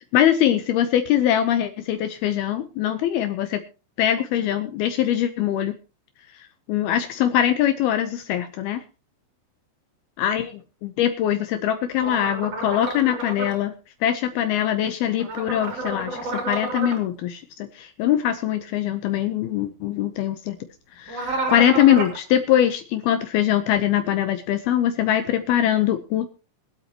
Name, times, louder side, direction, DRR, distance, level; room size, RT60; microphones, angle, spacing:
voice 1, 0.1-3.6 4.0-5.7 6.7-8.8 10.2-13.7 14.0-20.6 21.0-26.3, left 11 dB, 80° left, 9 dB, 2.2 m, -22 dB
sound 1, 12.0-13.5 15.2-17.0 21.1-22.2, right 2 dB, 35° right, 3.6 m, -30 dB
24.5 x 8.2 x 2.9 m, 0.32 s
omnidirectional pair, 5.7 m